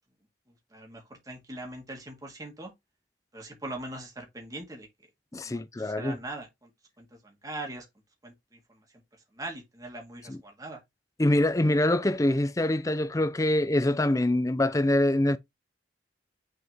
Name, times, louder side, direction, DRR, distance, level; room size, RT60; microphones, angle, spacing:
voice 1, 0.7-2.7 3.3-4.9 5.5-6.7 7.0-7.9 8.2-8.8 9.3-10.8, right 2 dB, 20° right, 2.3 m, -41 dB
voice 2, 5.3-6.2 10.3-10.4 11.2-15.4, left 1 dB, 15° left, 0.5 m, -24 dB
6.5 x 4.5 x 3.5 m
head